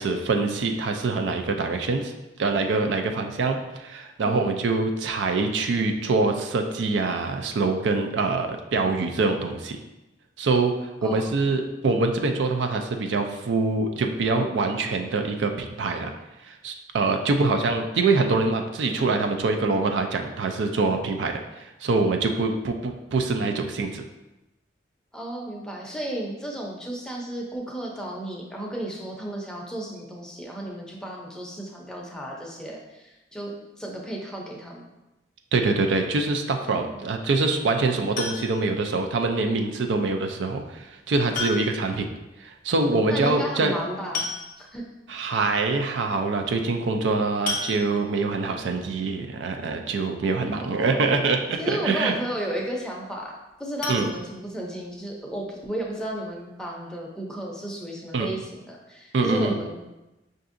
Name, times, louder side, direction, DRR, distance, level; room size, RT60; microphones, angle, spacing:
voice 1, 0.0-2.1 2.4-9.8 10.4-10.7 11.0-16.1 16.4-24.0 35.5-42.1 42.4-43.7 45.1-52.1 53.9-54.1 58.1-58.3 59.1-59.6, right 3 dB, 80° right, 5 dB, 0.4 m, -24 dB
voice 2, 4.2-4.6 11.0-11.5 17.5-17.6 25.1-33.5 33.8-34.8 36.6-37.0 41.9-42.0 43.1-44.3 44.6-44.9 50.5-51.1 51.6-59.8, right 1 dB, 5° left, -2 dB, 0.5 m, -34 dB
sound 1, 38.2-38.8 40.3-40.4 41.3-42.0 42.3-42.4 42.6-42.7 43.7-43.8 44.1-44.9 45.4-45.5 45.8-46.0 47.5-48.3 53.8-55.0 55.4-55.5 55.9-56.0 56.3-56.4, left 3 dB, 45° left, 0.6 m, -32 dB
5.5 x 2.6 x 2.5 m, 0.98 s
head